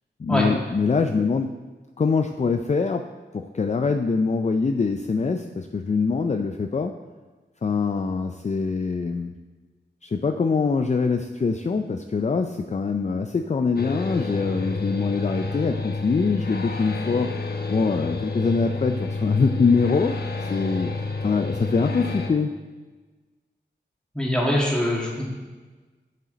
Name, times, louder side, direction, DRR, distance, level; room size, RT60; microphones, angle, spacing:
voice 1, 0.2-1.5 2.0-3.0 3.3-6.9 7.6-9.3 10.0-17.3 17.7-20.1 20.5-20.9 21.2-22.5, left 4 dB, 35° left, 6 dB, 0.4 m, -23 dB
sound 1, 13.8-22.3, left 3 dB, 55° left, 0.9 m, -29 dB
voice 2, 24.1-25.2, left 1 dB, 5° left, -3 dB, 2.1 m, -23 dB
7.5 x 7.3 x 4.0 m, 1.3 s
wide cardioid pair, 75°, 19 cm